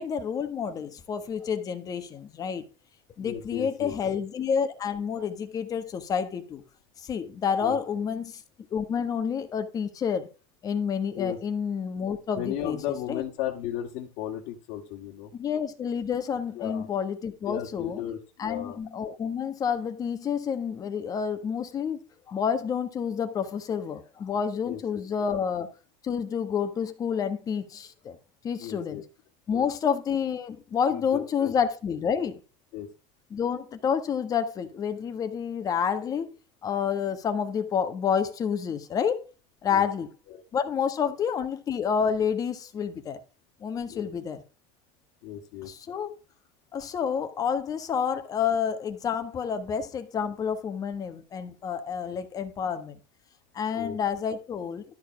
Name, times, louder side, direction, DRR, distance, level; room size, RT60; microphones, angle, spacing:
voice 1, 0.0-2.7 3.2-6.6 7.0-8.4 8.7-10.3 10.6-12.8 13.1-13.2 15.3-18.0 18.4-22.0 22.3-25.7 26.0-28.2 28.4-29.0 29.5-32.4 33.3-36.3 36.6-39.2 39.6-40.1 40.5-43.2 43.6-44.4 45.6-46.2 46.7-53.0 53.5-54.8, left 7 dB, 30° left, 1.4 m, -29 dB
voice 2, 3.2-4.0 7.6-7.8 11.1-11.4 12.4-15.3 16.6-16.9 17.5-18.8 24.6-24.8 28.6-29.0 29.5-29.7 30.9-31.5 32.7-32.9 39.7-39.9 40.3-40.4 43.9-44.1 45.2-45.7 53.7-54.0, left 11 dB, 65° left, 1.9 m, -35 dB
12.5 x 4.7 x 6.1 m
cardioid pair, 150°, 13 cm